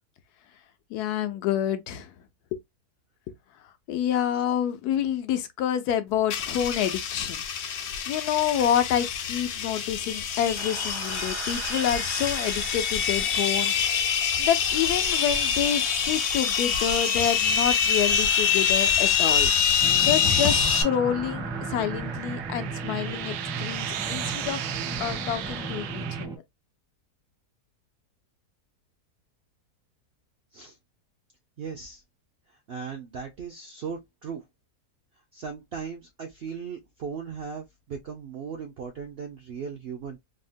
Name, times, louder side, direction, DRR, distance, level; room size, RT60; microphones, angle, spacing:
voice 1, 0.9-2.1 2.5-2.6 3.9-7.4 8.1-13.7 14.4-19.5 20.0-24.6 25.0-26.3, left 10 dB, 90° left, 1.2 m, -28 dB
sound 1, 6.3-20.8, left 7 dB, 70° left, 0.6 m, -25 dB
sound 2, 10.6-26.3, right 9 dB, 90° right, 1.1 m, -38 dB
sound 3, 19.8-26.4, right 3 dB, 5° right, 0.3 m, -35 dB
voice 2, 31.6-32.0 32.7-34.4 35.3-40.2, right 6 dB, 70° right, 0.5 m, -37 dB
3.6 x 2.1 x 2.5 m
omnidirectional pair, 1.7 m